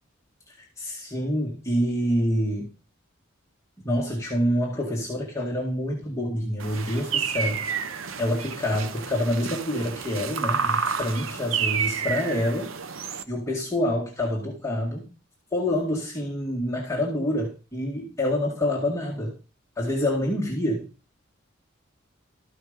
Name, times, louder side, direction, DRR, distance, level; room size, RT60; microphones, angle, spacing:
voice 1, 0.5-2.7 3.8-7.6 8.2-12.7 13.3-15.1 15.5-19.3 19.8-20.9, left 1 dB, 15° left, -4 dB, 2.0 m, -27 dB
sound 1, 6.6-13.2, right 6 dB, 75° right, 0.9 m, -30 dB
13.0 x 5.6 x 5.1 m, 0.34 s
head